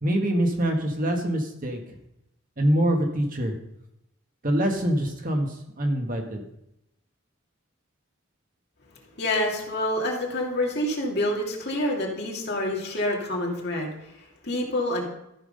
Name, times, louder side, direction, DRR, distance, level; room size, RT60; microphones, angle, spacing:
voice 1, 0.0-1.8 2.6-3.6 4.4-6.4, right 1 dB, 40° right, 2 dB, 1.7 m, -24 dB
voice 2, 9.2-13.9 14.4-15.1, left 1 dB, 50° left, -1 dB, 2.6 m, -27 dB
14.0 x 6.0 x 5.4 m, 0.82 s
head